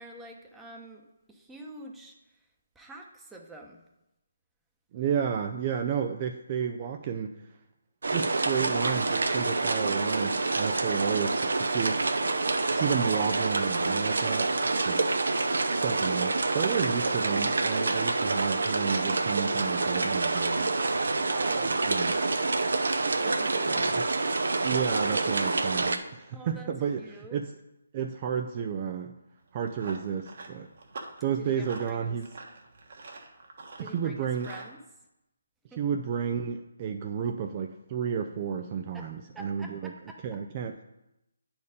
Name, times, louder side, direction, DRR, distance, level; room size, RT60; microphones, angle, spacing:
voice 1, 0.0-2.5 2.7-3.8 21.2-22.4 23.2-23.9 26.3-27.4 31.3-32.2 33.8-34.8 35.7-35.8 37.2-37.3 38.9-40.4, right 2 dB, 5° right, 1 dB, 0.9 m, -47 dB
voice 2, 4.9-7.3 8.1-12.0 12.7-15.0 15.8-20.7 21.9-22.1 23.7-23.9 24.6-27.5 27.9-29.2 29.5-30.7 31.2-32.3 33.9-34.5 35.8-39.9 40.2-40.8, right 7 dB, 30° right, 5 dB, 0.4 m, -31 dB
sound 1, 8.0-26.0, right 3 dB, 70° right, 0.7 m, -27 dB
Run, 29.4-34.7, right 3 dB, 55° right, 1.4 m, -46 dB
9.4 x 4.4 x 5.1 m, 0.91 s
figure-of-eight pair, 150°, 0 cm